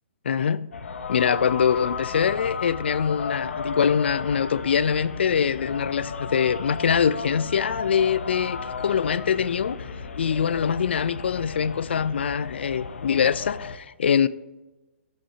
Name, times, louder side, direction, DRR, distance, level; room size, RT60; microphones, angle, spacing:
voice 1, 0.2-0.6 1.1-9.8 10.2-14.3, left 7 dB, 60° left, 0.4 m, -23 dB
sound 1, 0.7-13.8, left 5 dB, 80° left, 0.9 m, -34 dB
9.9 x 8.8 x 2.8 m
hypercardioid pair, 180°, 7 cm